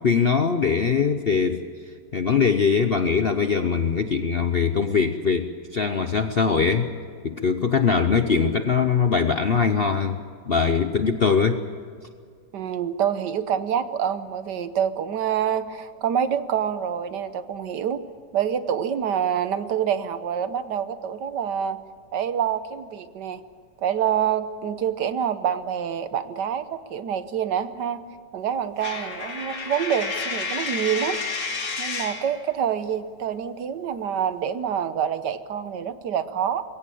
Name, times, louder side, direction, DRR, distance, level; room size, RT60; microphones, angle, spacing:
voice 1, 0.0-1.6 2.1-6.9 7.2-10.2 10.5-11.6, left 5 dB, 50° left, 8 dB, 0.7 m, -22 dB
voice 2, 12.5-18.0 18.3-21.8 22.1-23.4 23.8-28.0 28.3-31.2 31.8-36.6, right 8 dB, 70° right, 12 dB, 1.5 m, -26 dB
Coin (dropping), 28.8-32.3, left 4 dB, 75° left, 2.7 m, -30 dB
22.0 x 17.0 x 8.5 m, 2.1 s
omnidirectional pair, 2.0 m